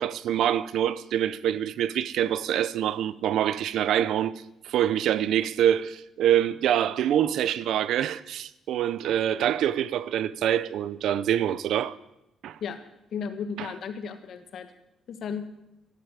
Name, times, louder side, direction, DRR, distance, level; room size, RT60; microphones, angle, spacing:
voice 1, 0.0-4.3 4.6-12.0 12.4-12.6 13.6-13.7, right 10 dB, 80° right, 0.6 m, -25 dB
voice 2, 13.1-14.7 15.1-15.4, left 6 dB, 65° left, 1.6 m, -34 dB
12.0 x 11.0 x 8.2 m
cardioid pair, 90°, 0 cm